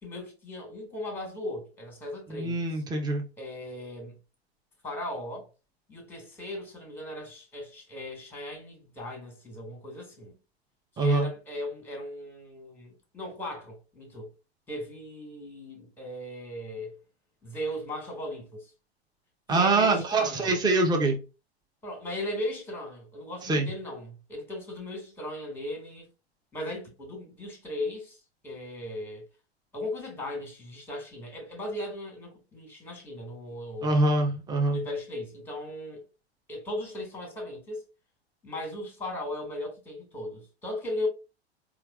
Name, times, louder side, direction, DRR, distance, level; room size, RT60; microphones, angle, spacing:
voice 1, 0.0-2.8 3.4-4.2 4.8-5.5 5.9-10.4 10.9-14.3 14.7-17.0 17.4-18.7 19.5-20.6 21.8-26.1 26.5-29.3 29.7-33.9 34.7-36.0 36.5-37.8 38.4-41.1, left 1 dB, 5° left, 1.5 m, -37 dB
voice 2, 2.3-3.2 11.0-11.3 19.5-21.2 23.4-23.7 33.8-34.8, right 2 dB, 15° right, 0.7 m, -24 dB
4.4 x 2.4 x 2.3 m
figure-of-eight pair, 90°, 32 cm